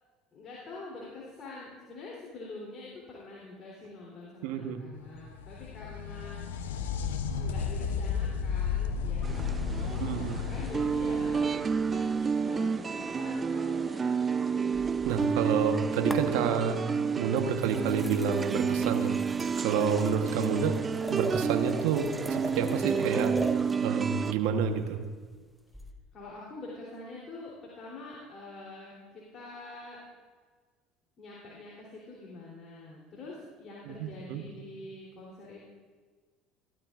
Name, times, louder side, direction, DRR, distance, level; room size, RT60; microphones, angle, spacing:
voice 1, 0.3-6.4 7.4-12.0 12.4-14.8 26.1-30.0 31.2-35.6, left 3 dB, 45° left, -4 dB, 3.2 m, -46 dB
voice 2, 4.4-4.9 10.0-10.4 15.0-16.8 17.2-19.1 19.6-20.8 21.1-23.4 23.8-25.0 33.9-34.4, right 7 dB, 75° right, 5 dB, 1.1 m, -29 dB
sound 1, 5.1-12.7 16.1-16.2 17.2-17.3, left 6 dB, 85° left, 0.7 m, -33 dB
sound 2, 9.2-24.3, right 6 dB, 30° right, 0.4 m, -30 dB
sound 3, 14.7-15.7 16.1-16.8 17.3-23.9 25.7-25.9, right 1 dB, ahead, 1.2 m, -41 dB
15.5 x 12.5 x 2.5 m, 1.5 s
hypercardioid pair, 75°, 0 cm